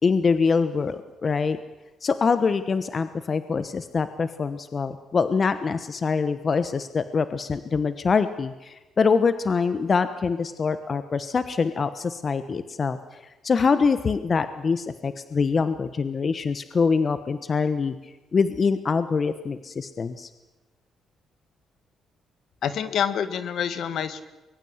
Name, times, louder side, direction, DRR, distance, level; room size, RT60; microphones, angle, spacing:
voice 1, 0.0-1.6 2.0-17.9 18.3-20.3, left 5 dB, 40° left, 12 dB, 1.2 m, -24 dB
voice 2, 22.6-24.2, left 8 dB, 70° left, 12 dB, 1.8 m, -27 dB
24.0 x 21.5 x 8.1 m, 1.1 s
cardioid pair, 90°, 0 cm